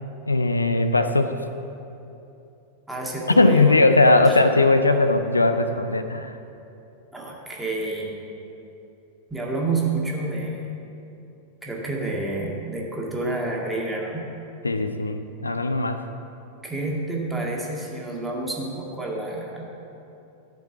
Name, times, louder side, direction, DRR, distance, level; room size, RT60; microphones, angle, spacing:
voice 1, 0.3-1.3 3.3-6.4 14.6-16.0, left 2 dB, 80° left, 9 dB, 0.4 m, -19 dB
voice 2, 2.9-4.2 7.1-8.1 9.3-10.7 11.6-14.3 16.6-19.6, right 2 dB, 5° right, -3 dB, 1.9 m, -29 dB
12.5 x 5.3 x 6.9 m, 2.8 s
figure-of-eight pair, 90°, 0 cm